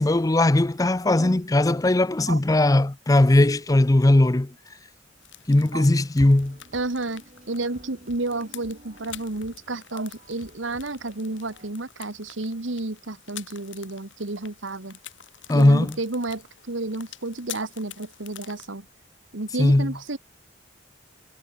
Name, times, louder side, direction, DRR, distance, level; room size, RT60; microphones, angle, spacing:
voice 1, 0.0-4.5 5.5-6.6 15.5-16.0 19.6-19.9, left 1 dB, 20° left, 0.5 m, -19 dB
sound 1, 5.2-18.7, left 12 dB, 80° left, 3.8 m, -46 dB
sound 2, 6.4-11.7, right 1 dB, 40° right, 4.2 m, -51 dB
voice 2, 6.7-15.0 15.5-18.8 19.3-20.2, right 2 dB, 85° right, 1.7 m, -31 dB
head